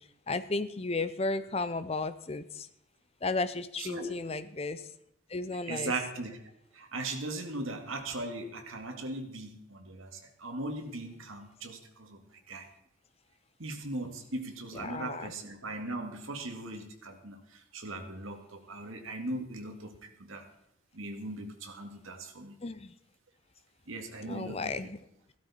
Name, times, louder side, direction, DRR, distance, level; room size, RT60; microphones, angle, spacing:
voice 1, 0.3-2.7 3.2-4.9 5.3-5.9 14.7-15.3 22.6-22.9 24.2-25.0, left 3 dB, 30° left, 13 dB, 0.6 m, -34 dB
voice 2, 3.8-4.1 5.5-6.4 6.7-12.2 12.5-12.7 13.6-20.5 20.9-22.5 23.9-24.7, right 2 dB, 75° right, 4 dB, 2.0 m, -39 dB
15.5 x 12.5 x 4.2 m, 0.78 s
head